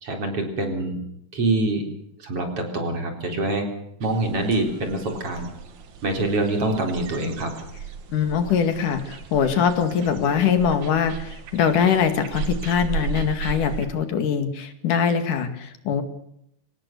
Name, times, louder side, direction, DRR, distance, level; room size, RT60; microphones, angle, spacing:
voice 1, 0.0-1.0 1.3-1.8 2.2-3.7 4.0-5.5 6.0-7.5, right 2 dB, 45° right, 4 dB, 4.9 m, -25 dB
sound 1, 4.0-13.9, right 6 dB, 70° right, 3.1 m, -36 dB
voice 2, 8.1-16.0, left 7 dB, 85° left, 9 dB, 3.7 m, -22 dB
24.5 x 18.5 x 6.8 m, 0.73 s
omnidirectional pair, 3.6 m